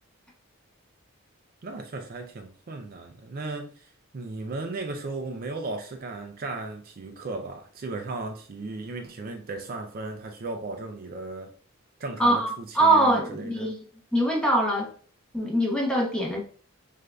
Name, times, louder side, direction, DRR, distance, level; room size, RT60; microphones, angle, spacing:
voice 1, 1.6-11.5 12.0-13.7, right 3 dB, 45° right, 0.4 m, -36 dB
voice 2, 12.2-12.5 12.7-13.8 14.1-14.9 15.3-16.4, right 1 dB, 5° left, 0.9 m, -23 dB
6.4 x 2.6 x 2.2 m
head